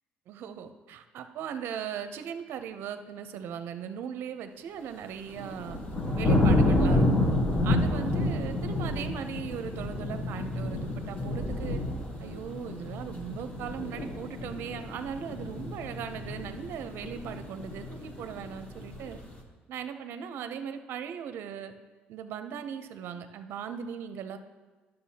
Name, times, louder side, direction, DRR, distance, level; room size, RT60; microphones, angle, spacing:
voice 1, 0.3-5.8 6.1-7.1 7.6-11.8 12.2-19.2 19.7-21.7 22.1-24.4, right 8 dB, 65° right, 9 dB, 0.6 m, -38 dB
sound 1, 5.1-19.4, left 1 dB, 30° left, 1.1 m, -29 dB
11.0 x 6.6 x 2.8 m, 1.3 s
cardioid pair, 110°, 4 cm